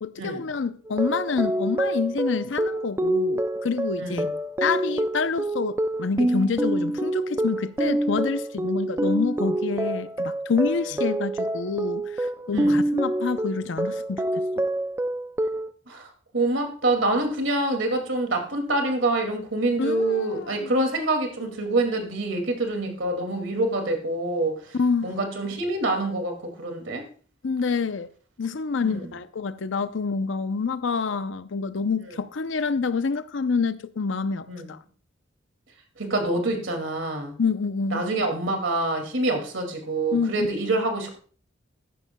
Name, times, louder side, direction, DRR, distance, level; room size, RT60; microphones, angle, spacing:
voice 1, 0.0-4.3 4.6-14.2 14.6-14.7 19.8-20.7 24.7-25.1 27.4-28.1 28.4-34.8 37.4-38.0 40.1-40.5, left 4 dB, 70° left, 0.6 m, -27 dB
sound 1, 0.9-15.7, right 1 dB, 15° right, 0.3 m, -26 dB
voice 2, 4.0-4.3 12.5-12.8 15.9-16.1 16.3-24.6 25.0-27.0 28.8-29.0 34.5-34.7 36.0-37.3 37.9-41.2, right 2 dB, 70° right, 2.3 m, -26 dB
14.0 x 11.0 x 2.2 m
head